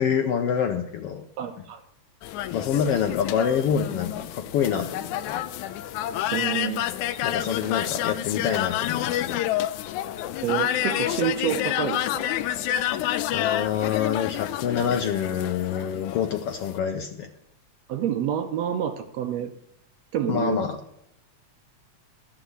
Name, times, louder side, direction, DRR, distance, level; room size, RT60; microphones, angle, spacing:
voice 1, 0.0-1.2 2.5-5.4 7.2-9.4 13.3-17.3 20.3-20.8, left 8 dB, 70° left, 6 dB, 1.5 m, -26 dB
voice 2, 1.4-1.8 6.3-6.8 10.4-12.3 17.9-19.5 20.1-20.7, right 9 dB, 70° right, 7 dB, 1.7 m, -28 dB
sound 1, 2.2-16.8, left 12 dB, 85° left, 2.0 m, -29 dB
13.0 x 5.8 x 8.0 m, 0.76 s
omnidirectional pair, 3.4 m